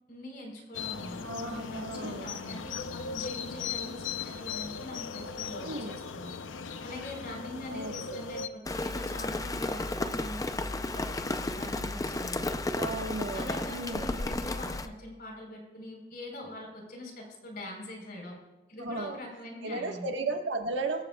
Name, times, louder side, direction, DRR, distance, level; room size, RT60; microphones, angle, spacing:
voice 1, 0.1-6.4 6.8-12.5 13.3-18.4 18.7-20.1, left 1 dB, 50° left, 1 dB, 4.1 m, -43 dB
sound 1, 0.7-8.5, left 6 dB, 90° left, 0.6 m, -38 dB
voice 2, 1.2-2.3 5.6-6.0 7.7-8.2 12.7-14.1 18.8-19.2 19.6-21.0, right 2 dB, 75° right, 3 dB, 1.4 m, -35 dB
Rain, 8.7-14.9, left 2 dB, 20° left, 0.5 m, -33 dB
23.5 x 14.0 x 2.3 m, 1.1 s
head